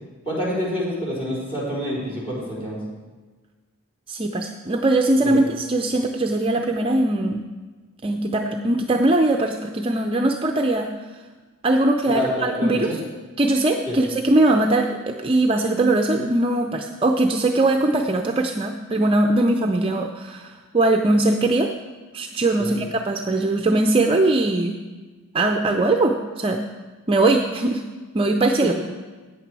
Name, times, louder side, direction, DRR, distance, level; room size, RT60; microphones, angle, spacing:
voice 1, 0.3-2.8 5.3-5.4 12.1-13.0 13.9-14.0 22.6-22.8 28.6-28.7, equal, 25° left, -6 dB, 3.9 m, -27 dB
voice 2, 4.1-7.4 8.0-10.9 11.6-13.0 13.4-21.7 22.1-24.8 25.3-26.6 27.1-27.8 28.1-28.7, right 2 dB, 25° right, 4 dB, 0.5 m, -20 dB
14.0 x 8.8 x 4.7 m, 1.3 s
head